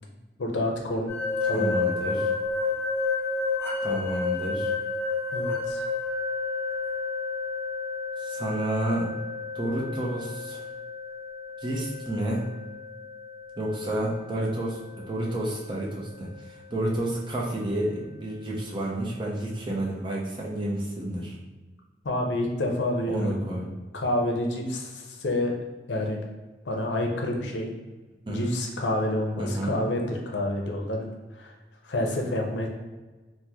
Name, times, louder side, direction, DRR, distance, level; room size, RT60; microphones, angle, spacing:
voice 1, 0.4-1.1 1.5-1.9 5.3-5.9 22.0-23.4 23.9-25.5 25.9-26.2 26.7-27.7 28.3-31.1 31.4-31.5 31.8-32.7, left 1 dB, 80° left, 1 dB, 0.5 m, -28 dB
sound 1, 1.1-15.9, left 4 dB, 15° left, 0.6 m, -31 dB
voice 2, 1.4-2.3 3.8-4.7 8.2-9.1 9.5-10.6 11.6-12.5 13.6-21.4 23.1-23.7 28.3-28.5 29.4-29.8, right 1 dB, 25° right, -3 dB, 0.5 m, -30 dB
2.9 x 2.1 x 3.5 m, 1.2 s
head